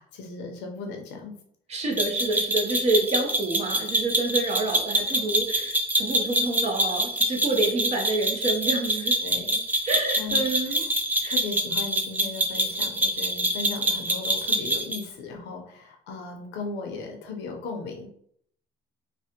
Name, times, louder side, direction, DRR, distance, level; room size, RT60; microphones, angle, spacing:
voice 1, 0.0-1.3 9.2-9.6 10.2-10.5 11.3-18.1, left 4 dB, 90° left, 3 dB, 0.7 m, -36 dB
voice 2, 1.7-9.2 9.9-10.8 11.2-11.4, right 2 dB, 40° right, 2 dB, 0.7 m, -28 dB
sound 1, 2.0-15.0, right 1 dB, 10° right, 0.4 m, -25 dB
3.3 x 2.2 x 2.8 m, 0.66 s
cardioid pair, 110°, 17 cm